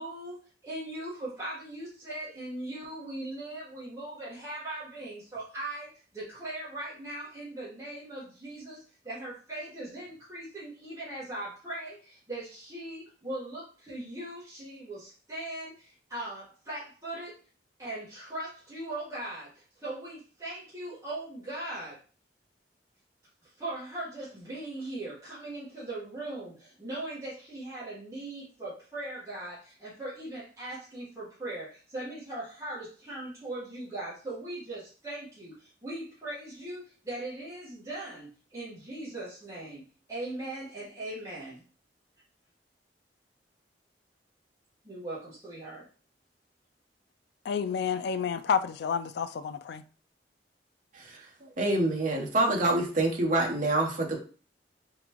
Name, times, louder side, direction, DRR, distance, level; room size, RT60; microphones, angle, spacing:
voice 1, 0.0-17.4 17.8-22.0 23.6-41.6 44.8-45.8, right 1 dB, 20° right, 1.5 m, -39 dB
voice 2, 47.4-49.8, left 6 dB, 65° left, 0.3 m, -30 dB
voice 3, 51.6-54.2, right 2 dB, 50° right, 0.9 m, -26 dB
4.1 x 3.7 x 3.0 m
head